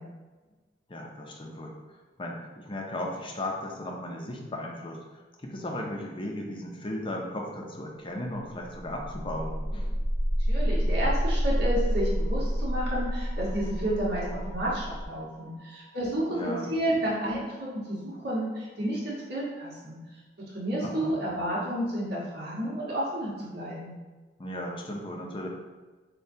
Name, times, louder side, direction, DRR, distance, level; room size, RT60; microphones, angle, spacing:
voice 1, 0.9-1.7 2.2-5.0 5.4-9.9 15.4-15.5 16.3-16.7 20.8-21.2 24.4-25.5, left 1 dB, 30° left, 0 dB, 0.6 m, -36 dB
sound 1, 8.5-18.4, equal, 45° right, 1.0 m, -30 dB
voice 2, 10.5-20.0 20.5-23.9, right 1 dB, 65° right, -6 dB, 1.4 m, -31 dB
6.6 x 2.3 x 2.7 m, 1.3 s
head